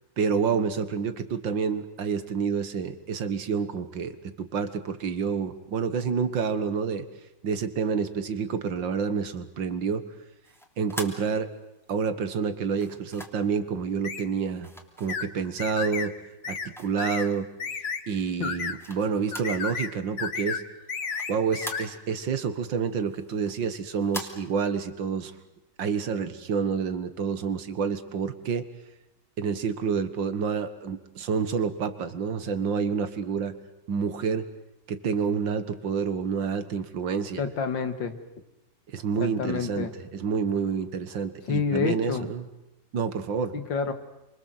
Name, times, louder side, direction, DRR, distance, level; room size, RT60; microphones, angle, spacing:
voice 1, 0.2-7.1 7.4-10.1 10.8-11.5 11.9-14.7 15.0-16.1 16.5-17.5 18.1-20.6 21.3-25.3 25.8-28.7 29.4-33.6 33.9-34.5 34.9-37.4 38.9-42.5 42.9-43.5, right 6 dB, 85° right, 11 dB, 2.3 m, -28 dB
sound 1, 10.4-11.9 12.7-13.6 14.6-15.7 16.1-17.5 18.0-19.7 19.9-20.0 20.4-22.3 22.7-24.3, equal, ahead, 2.9 m, -42 dB
sound 2, 14.0-14.3 15.1-15.3 15.6-16.1 16.4-16.7 17.0-17.3 17.6-18.0 18.4-18.8 19.3-19.9 20.2-20.6 20.9-21.9, left 5 dB, 45° left, 1.6 m, -32 dB
voice 2, 37.4-38.2 39.2-39.9 41.5-42.3 43.5-43.9, left 5 dB, 85° left, 9 dB, 2.6 m, -28 dB
28.5 x 25.0 x 7.8 m, 0.93 s
omnidirectional pair, 2.0 m